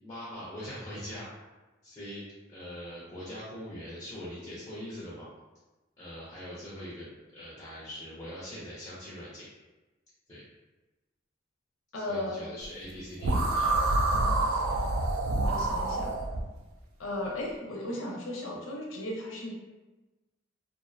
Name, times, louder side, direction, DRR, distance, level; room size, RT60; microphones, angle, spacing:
voice 1, 0.0-1.5 1.8-2.2 2.5-5.3 6.0-7.1 7.3-9.5 10.3-10.4 12.0-13.9, equal, 20° left, -7 dB, 0.4 m, -42 dB
voice 2, 11.9-12.5 15.4-16.2 17.0-19.5, left 1 dB, 80° left, -2 dB, 0.6 m, -36 dB
sound 1, 13.2-16.4, right 2 dB, 90° right, 0.4 m, -27 dB
2.5 x 2.0 x 2.5 m, 1.1 s
head